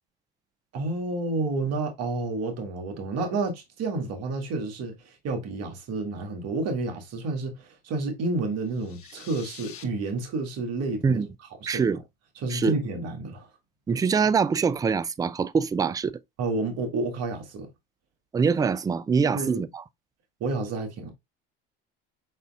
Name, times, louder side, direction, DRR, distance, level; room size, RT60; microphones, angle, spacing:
voice 1, 0.7-11.2 11.6-11.9 12.4-13.5 13.9-14.0 16.4-17.7 19.3-19.6 20.4-21.1, right 3 dB, 60° right, 1.7 m, -30 dB
sound 1, 8.6-9.8, left 8 dB, 50° left, 1.3 m, -46 dB
voice 2, 11.7-12.0 12.5-12.8 13.9-16.1 18.3-19.8, right 5 dB, 15° right, 0.3 m, -24 dB
5.1 x 4.2 x 2.3 m
hypercardioid pair, 80°, 29 cm